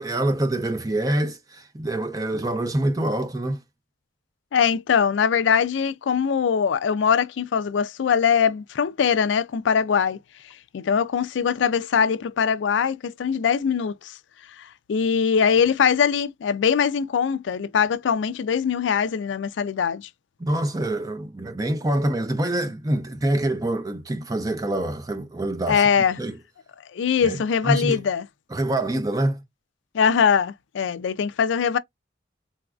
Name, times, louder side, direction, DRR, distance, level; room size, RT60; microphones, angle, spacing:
voice 1, 0.0-3.6 20.4-25.8 26.2-26.4 27.2-28.0 28.5-29.4, right 1 dB, 20° right, 0.4 m, -25 dB
voice 2, 4.5-10.2 10.7-14.1 14.6-20.1 25.7-26.2 26.9-28.3 29.9-31.8, left 7 dB, 80° left, 0.4 m, -22 dB
4.0 x 2.4 x 2.2 m
head